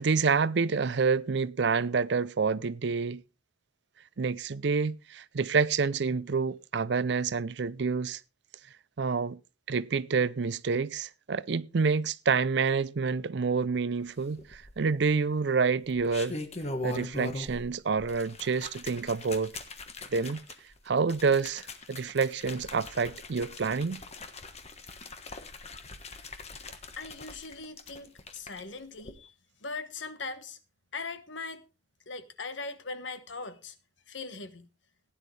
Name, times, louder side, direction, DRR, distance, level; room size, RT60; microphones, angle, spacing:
voice 1, 0.0-3.2 4.2-8.2 9.0-9.4 9.7-16.4 16.8-19.5 20.1-20.4 20.9-21.6 21.9-24.0, right 5 dB, 60° right, 0.5 m, -28 dB
sound 1, 14.4-15.0 15.8-17.7 18.0-28.6 29.0-29.1, left 2 dB, 35° left, 1.4 m, -41 dB
voice 2, 27.0-29.3 29.6-30.6 30.9-31.6 32.1-33.8 34.1-34.7, left 3 dB, 70° left, 1.3 m, -40 dB
16.0 x 10.0 x 3.3 m
head